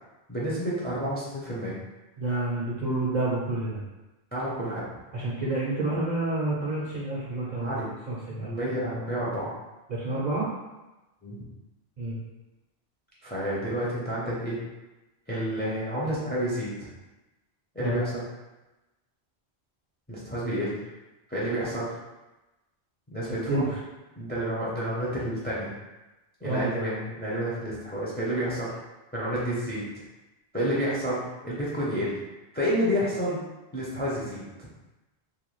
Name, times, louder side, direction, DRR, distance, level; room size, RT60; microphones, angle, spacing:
voice 1, 0.3-1.8 4.3-4.8 7.5-7.9 8.3-9.5 11.2-11.4 13.2-14.6 15.3-16.9 17.7-18.2 20.1-20.8 21.3-21.9 23.1-23.6 24.2-25.7 26.4-28.7 29.1-29.8 30.5-32.2 32.5-33.4 33.7-34.7, equal, 15° left, -7 dB, 0.4 m, -29 dB
voice 2, 2.2-3.8 5.1-7.7 8.1-8.5 9.9-10.5 12.0-12.2 17.8-18.0 23.2-23.7 26.4-26.7, right 2 dB, 55° right, -6 dB, 0.5 m, -29 dB
2.6 x 2.2 x 3.0 m, 1.1 s
omnidirectional pair, 1.1 m